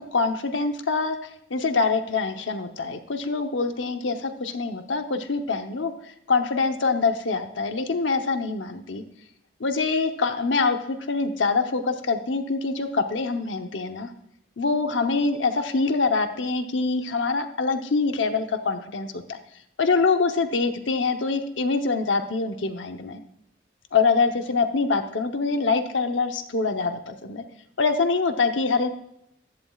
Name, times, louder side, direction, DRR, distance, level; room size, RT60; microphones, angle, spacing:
voice 1, 0.0-9.0 9.6-14.1 14.6-19.4 19.8-23.2 23.9-27.4 27.8-28.9, left 4 dB, 80° left, 7 dB, 0.9 m, -25 dB
15.0 x 11.5 x 2.4 m, 0.79 s
head